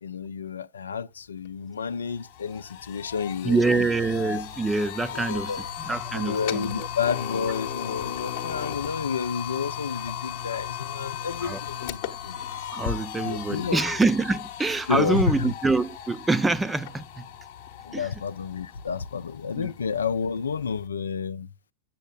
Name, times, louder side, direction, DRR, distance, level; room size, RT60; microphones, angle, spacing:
voice 1, 0.0-3.9 5.1-5.7 6.1-12.4 13.2-13.8 14.9-15.5 17.8-21.5, left 6 dB, 70° left, 0.4 m, -30 dB
sound 1, 1.4-1.5 1.9-20.9, left 9 dB, 50° left, 0.9 m, -36 dB
voice 2, 3.4-5.5 5.9-6.9 11.4-11.6 12.7-17.3 17.9-18.1 19.6-19.7, right 3 dB, 10° right, 0.5 m, -25 dB
7.7 x 7.1 x 2.3 m
figure-of-eight pair, 90°, 0 cm